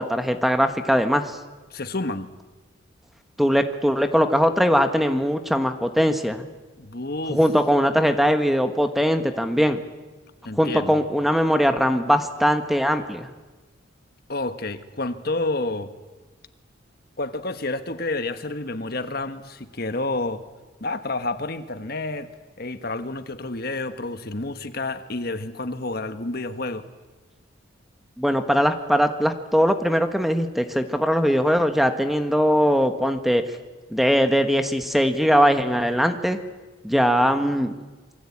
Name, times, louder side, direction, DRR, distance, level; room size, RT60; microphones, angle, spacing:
voice 1, 0.0-1.4 3.4-6.4 7.3-9.8 10.6-13.3 28.2-33.4 33.9-36.4 36.8-37.7, equal, ahead, 7 dB, 1.3 m, -20 dB
voice 2, 1.7-2.3 6.8-7.4 10.4-10.9 14.3-15.9 17.2-20.4 20.8-22.3 22.6-26.9, left 2 dB, 50° left, 9 dB, 1.4 m, -29 dB
27.0 x 23.5 x 8.6 m, 1.2 s
head